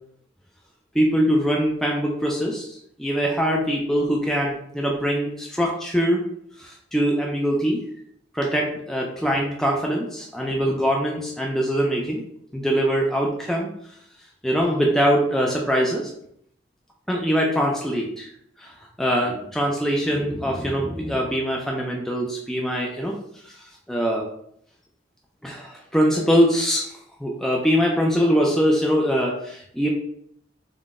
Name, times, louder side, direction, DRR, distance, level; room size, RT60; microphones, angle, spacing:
voice 1, 0.9-6.2 6.6-7.8 8.3-12.2 12.5-13.7 14.4-16.1 17.1-18.3 18.6-18.7 19.0-23.1 23.5-23.6 23.9-24.2 25.4-26.9 27.2-29.9, equal, ahead, -1 dB, 0.3 m, -23 dB
3.8 x 2.1 x 3.5 m, 0.68 s
head